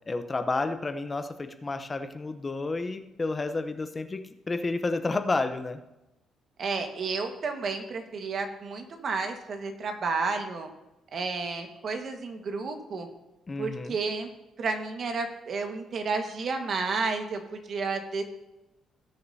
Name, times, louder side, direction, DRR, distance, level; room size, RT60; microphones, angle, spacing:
voice 1, 0.1-5.8 13.5-14.0, left 3 dB, 25° left, 8 dB, 0.7 m, -31 dB
voice 2, 6.6-10.7 11.1-13.1 13.6-14.3 14.6-18.2, right 4 dB, 55° right, 5 dB, 1.5 m, -31 dB
18.5 x 6.5 x 2.8 m, 0.99 s
cardioid pair, 90°, 0 cm